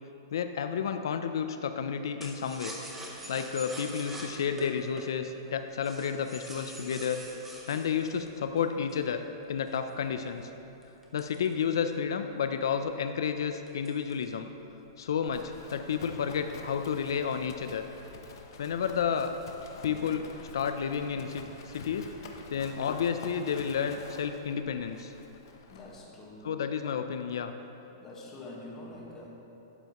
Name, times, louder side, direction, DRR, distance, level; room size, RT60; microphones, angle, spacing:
voice 1, 0.3-2.7 3.3-7.2 7.7-9.2 9.5-10.5 11.1-14.5 15.0-17.8 18.6-19.3 19.8-20.3 20.5-22.2 22.5-25.1 26.4-27.5, left 7 dB, 80° left, 8 dB, 0.4 m, -31 dB
sound 1, 2.2-9.1 9.7-12.1 12.5-12.6 12.9-13.2 13.7-14.4 14.7-15.2, right 1 dB, 10° right, 0.9 m, -45 dB
Livestock farm animals working animals, 15.2-26.0, left 4 dB, 65° left, 0.9 m, -47 dB
voice 2, 21.5-21.9 25.7-26.9 27.9-29.3, left 2 dB, 15° left, -3 dB, 1.4 m, -47 dB
12.0 x 7.9 x 3.0 m, 3.0 s
supercardioid pair, 160°, 2 cm